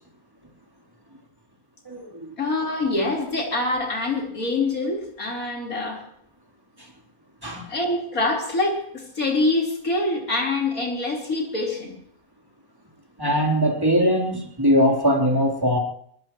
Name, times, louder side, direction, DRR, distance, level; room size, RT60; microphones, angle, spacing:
voice 1, 1.9-2.3 7.4-7.7 13.2-15.8, equal, 15° right, 0 dB, 3.7 m, -21 dB
voice 2, 2.4-6.0 7.7-11.9, left 2 dB, 75° left, -1 dB, 4.7 m, -25 dB
23.0 x 19.5 x 3.1 m, 0.65 s
omnidirectional pair, 1.5 m